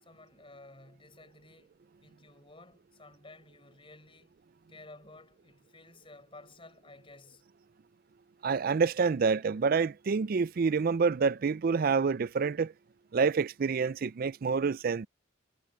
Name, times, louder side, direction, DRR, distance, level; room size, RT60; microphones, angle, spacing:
voice 1, 0.0-1.7 2.0-4.3 4.7-7.4, left 2 dB, 25° left, 5.3 m, -54 dB
voice 2, 8.4-12.7 13.1-15.1, right 5 dB, 50° right, 0.4 m, -27 dB
head